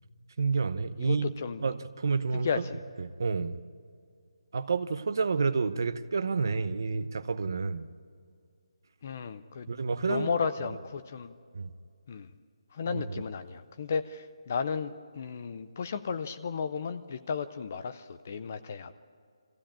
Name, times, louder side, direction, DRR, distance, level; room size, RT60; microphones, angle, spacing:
voice 1, 0.4-1.4 1.6-2.5 3.0-3.6 4.5-7.9 9.7-10.3 11.5-11.7 12.9-13.2, right 4 dB, 40° right, 13 dB, 0.8 m, -29 dB
voice 2, 1.0-1.6 2.3-2.8 9.0-9.7 10.1-11.3 12.1-12.3 12.7-18.9, left 6 dB, 20° left, 11 dB, 0.4 m, -34 dB
23.0 x 16.0 x 8.8 m, 2.2 s
hypercardioid pair, 180°, 3 cm